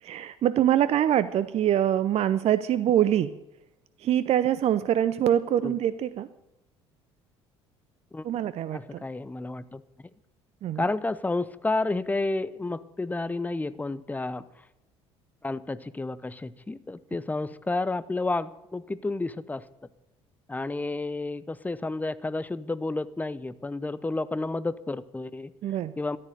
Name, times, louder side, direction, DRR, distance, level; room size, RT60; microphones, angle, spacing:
voice 1, 0.0-3.3 4.0-6.3 8.2-9.0 10.6-10.9 25.6-25.9, right 11 dB, 45° right, 15 dB, 0.6 m, -24 dB
voice 2, 8.7-9.8 10.8-14.4 15.4-19.6 20.5-25.5 26.0-26.2, left 2 dB, 10° left, 17 dB, 0.7 m, -31 dB
13.5 x 10.5 x 6.7 m, 0.93 s
hypercardioid pair, 60°, 14 cm